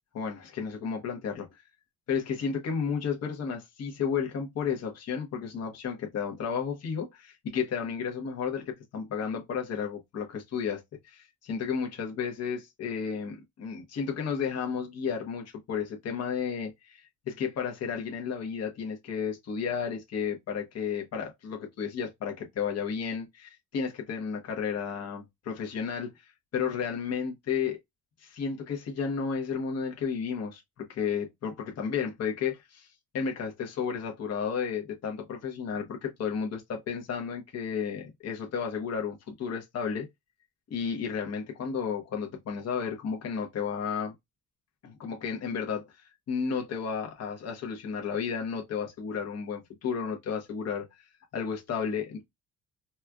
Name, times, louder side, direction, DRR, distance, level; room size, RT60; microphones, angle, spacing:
voice 1, 0.1-1.6 2.1-27.8 28.2-32.9 33.1-40.1 40.7-44.1 44.8-46.0 46.3-50.9 51.3-52.2, left 6 dB, 55° left, 1.0 m, -32 dB
4.2 x 2.3 x 2.3 m
cardioid pair, 90°, 30 cm